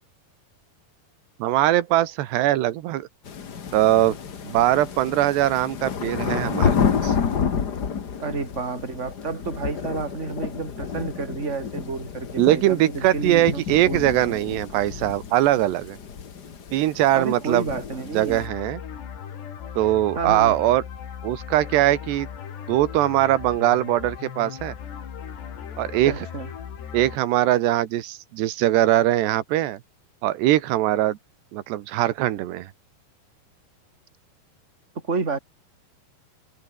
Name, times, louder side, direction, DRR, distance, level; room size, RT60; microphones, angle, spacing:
voice 1, 1.4-3.1 3.7-4.2 4.4-6.8 7.0-7.2 12.4-16.0 16.7-17.6 18.1-18.8 19.8-20.8 21.2-22.3 22.7-24.8 25.8-26.1 26.9-29.8 30.2-31.2 31.5-32.7, right 14 dB, 85° right, 3.5 m, -21 dB
sound 1, 3.2-18.5, left 6 dB, 65° left, 0.9 m, -30 dB
voice 2, 8.2-14.4 17.1-18.4 20.2-20.5 26.1-26.5 35.0-35.4, right 4 dB, 20° right, 3.6 m, -30 dB
sound 2, 18.3-27.2, left 8 dB, 85° left, 5.6 m, -37 dB
omnidirectional pair, 4.7 m